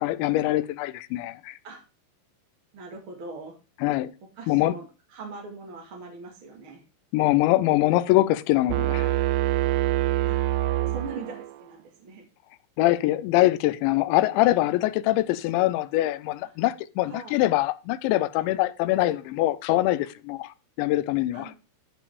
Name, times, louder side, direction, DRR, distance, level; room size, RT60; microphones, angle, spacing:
voice 1, 0.0-1.6 3.8-4.1 4.5-4.7 7.1-9.1 12.8-21.5, left 16 dB, 90° left, 3.0 m, -23 dB
voice 2, 2.7-3.6 4.4-6.8 10.3-10.4 10.9-12.3 16.4-16.5 17.1-17.4 21.3-21.5, right 3 dB, 40° right, 2.1 m, -41 dB
sound 1, 8.7-11.7, right 14 dB, 80° right, 2.8 m, -25 dB
14.0 x 5.3 x 4.8 m
omnidirectional pair, 5.1 m